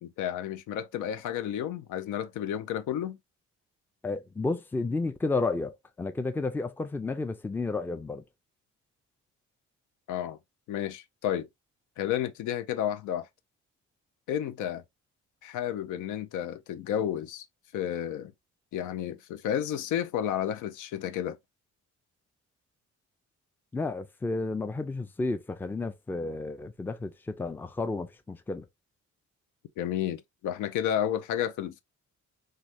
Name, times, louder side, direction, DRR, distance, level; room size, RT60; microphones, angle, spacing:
voice 1, 0.0-3.2 10.1-10.4 10.7-11.5 12.0-13.3 14.3-14.8 15.4-17.5 17.7-18.3 18.7-21.4 29.8-31.8, left 10 dB, 80° left, 0.5 m, -31 dB
voice 2, 4.0-8.2 23.7-28.7, left 3 dB, 5° left, 0.4 m, -32 dB
3.1 x 2.3 x 2.5 m
cardioid pair, 90°, 30 cm